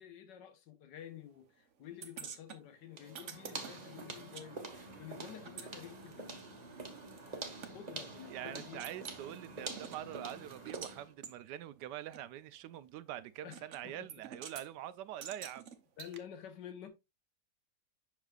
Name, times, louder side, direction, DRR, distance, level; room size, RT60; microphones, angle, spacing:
voice 1, 0.0-6.6 7.7-8.9 13.4-14.1 16.0-16.9, left 10 dB, 80° left, 1.7 m, -50 dB
sound 1, 2.0-4.5 4.7-7.7 8.2-8.3 8.6-9.2 9.7-10.9 11.2-11.4 12.1-12.2 13.5-13.8 14.1-14.7 15.2-16.2, right 7 dB, 50° right, 1.0 m, -49 dB
sound 2, 2.9-11.1, right 3 dB, 30° right, 1.0 m, -46 dB
voice 2, 8.3-15.7, right 12 dB, 80° right, 1.2 m, -45 dB
7.3 x 5.9 x 2.3 m
omnidirectional pair, 1.9 m